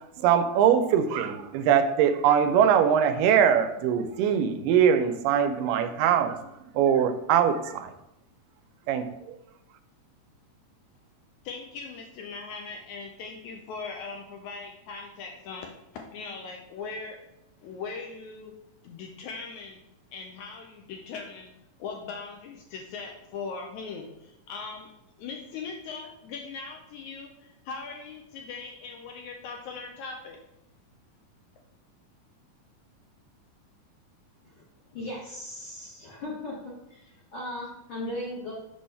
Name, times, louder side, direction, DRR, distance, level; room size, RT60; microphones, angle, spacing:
voice 1, 0.2-6.4 6.7-7.9 8.9-9.1, right 8 dB, 85° right, 9 dB, 2.2 m, -22 dB
voice 2, 11.4-17.2 17.6-18.5 18.8-19.8 20.1-21.5 21.8-24.9 25.2-30.4, left 4 dB, 80° left, 2 dB, 1.8 m, -40 dB
voice 3, 34.9-38.5, left 1 dB, 60° left, -5 dB, 1.4 m, -37 dB
6.2 x 3.1 x 5.5 m, 0.85 s
omnidirectional pair, 3.8 m